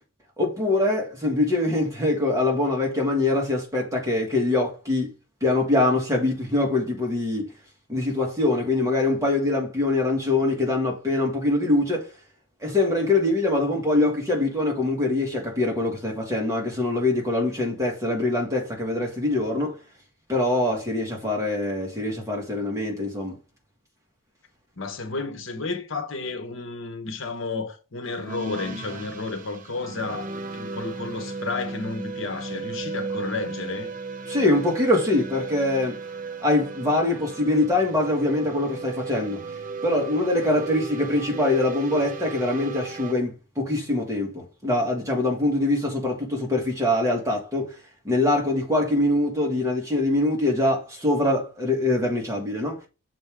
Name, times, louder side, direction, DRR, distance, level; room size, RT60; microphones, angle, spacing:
voice 1, 0.4-5.1 5.4-7.5 7.9-12.1 12.6-19.8 20.3-23.4 34.3-36.0 36.4-39.4 39.8-47.7 48.0-52.8, left 2 dB, 15° right, 1.7 m, -23 dB
voice 2, 24.8-33.9, left 3 dB, 70° left, 1.1 m, -32 dB
sound 1, 28.0-43.1, right 4 dB, 40° right, 0.6 m, -35 dB
6.7 x 4.5 x 3.5 m
head